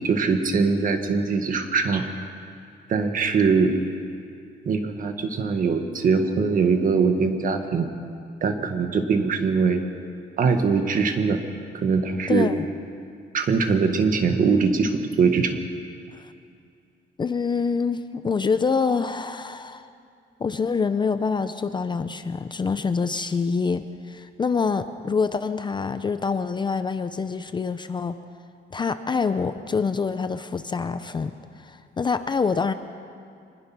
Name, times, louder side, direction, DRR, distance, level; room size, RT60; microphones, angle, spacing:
voice 1, 0.0-2.1 2.9-3.8 4.7-7.9 8.4-9.8 10.4-11.4 11.7-12.5 13.3-15.6, right 5 dB, 45° right, 6 dB, 1.6 m, -22 dB
voice 2, 12.3-12.7 16.1-16.3 17.2-19.9 20.4-28.2 28.7-32.7, left 5 dB, 25° left, 10 dB, 0.5 m, -26 dB
24.5 x 20.5 x 6.0 m, 2.4 s
cardioid pair, 175°, 19 cm